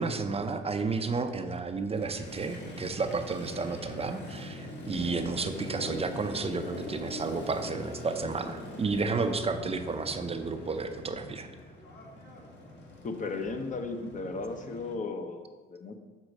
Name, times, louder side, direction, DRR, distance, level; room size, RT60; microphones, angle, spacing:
voice 1, 0.0-11.5, right 4 dB, 30° right, 7 dB, 0.5 m, -32 dB
Motorcycle, 1.9-14.9, left 1 dB, 60° left, 1.6 m, -42 dB
Bass guitar, 4.9-11.2, equal, 10° left, 0.8 m, -49 dB
voice 2, 13.0-16.0, left 3 dB, 40° left, 6 dB, 0.8 m, -35 dB
6.5 x 3.9 x 6.2 m, 1.3 s
cardioid pair, 90°, 20 cm